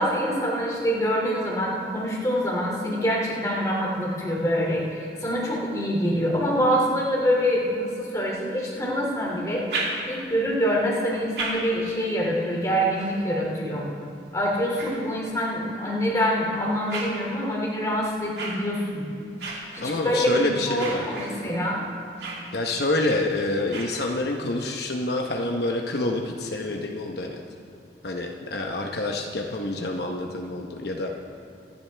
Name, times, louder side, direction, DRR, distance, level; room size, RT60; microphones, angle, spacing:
voice 1, 0.0-9.6 10.1-13.9 14.3-19.1 19.7-21.8, equal, 20° left, -3 dB, 2.6 m, -25 dB
sound 1, 9.4-10.4 11.0-15.6 16.2-24.5, right 2 dB, 70° right, 2.9 m, -38 dB
voice 2, 19.8-21.1 22.5-27.4 28.0-31.1, left 2 dB, 65° left, 1 dB, 0.9 m, -27 dB
25.0 x 10.5 x 3.4 m, 2.3 s
head